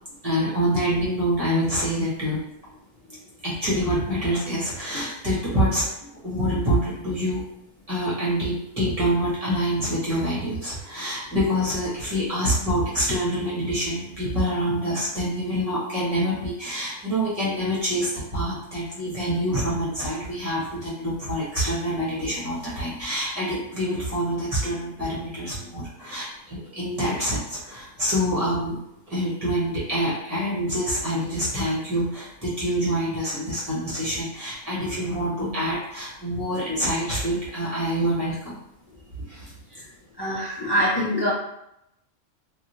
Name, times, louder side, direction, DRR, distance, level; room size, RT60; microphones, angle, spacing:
voice 1, 0.2-2.4 3.4-5.9 6.2-7.4 7.9-28.8 29.1-38.5 39.2-39.4, equal, 30° right, -8 dB, 1.2 m, -26 dB
voice 2, 40.2-41.3, equal, 30° left, -8 dB, 0.4 m, -24 dB
2.9 x 2.7 x 2.7 m, 0.80 s
omnidirectional pair, 1.4 m